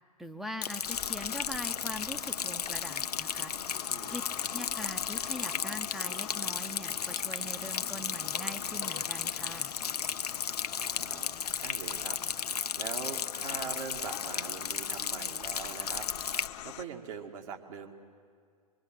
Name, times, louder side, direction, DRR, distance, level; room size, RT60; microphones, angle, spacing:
voice 1, 0.2-3.5 4.1-4.2 4.5-9.7, equal, ahead, 8 dB, 0.7 m, -42 dB
Rain, 0.6-16.5, left 7 dB, 80° left, 0.6 m, -35 dB
sound 1, 0.8-16.8, left 11 dB, 45° left, 0.8 m, -44 dB
voice 2, 10.8-11.4 11.6-16.1 16.6-17.9, right 6 dB, 55° right, 3 dB, 2.0 m, -42 dB
23.5 x 23.5 x 7.5 m, 2.1 s
figure-of-eight pair, 105°, 20 cm